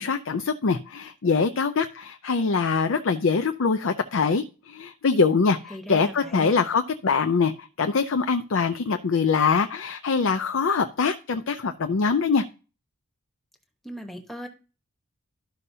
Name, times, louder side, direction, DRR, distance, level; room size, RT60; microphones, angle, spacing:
voice 1, 0.0-12.4, left 5 dB, 65° left, 8 dB, 0.5 m, -23 dB
voice 2, 5.7-6.6 13.8-14.5, equal, ahead, 3 dB, 1.0 m, -38 dB
12.5 x 5.5 x 2.7 m, 0.34 s
head